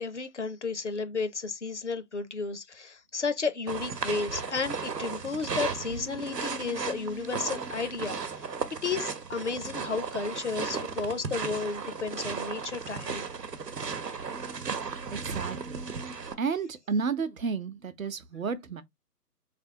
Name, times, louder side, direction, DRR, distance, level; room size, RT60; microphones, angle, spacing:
voice 1, 0.0-8.5 8.8-13.3, left 4 dB, 50° left, 0.6 m, -33 dB
sound 1, 3.7-16.3, right 5 dB, 85° right, 0.9 m, -35 dB
voice 2, 15.1-15.8 16.4-18.8, right 5 dB, 60° right, 0.7 m, -32 dB
3.5 x 3.3 x 2.6 m
figure-of-eight pair, 150°, 47 cm